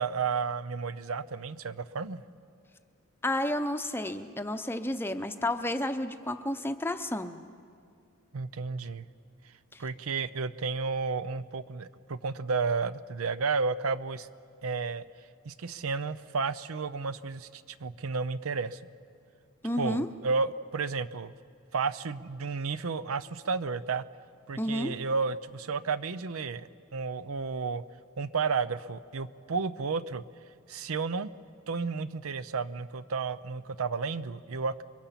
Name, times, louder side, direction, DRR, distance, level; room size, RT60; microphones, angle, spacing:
voice 1, 0.0-2.2 8.3-9.1 9.8-14.3 14.6-15.0 15.5-18.8 19.8-21.3 21.7-24.0 24.5-27.8 28.2-30.2 30.7-31.3 31.7-34.8, right 4 dB, 80° right, 15 dB, 0.6 m, -32 dB
voice 2, 3.2-7.4 9.7-9.8 19.6-20.1 24.6-24.9, left 1 dB, 10° left, 8 dB, 0.7 m, -31 dB
29.5 x 23.0 x 5.8 m, 2.3 s
head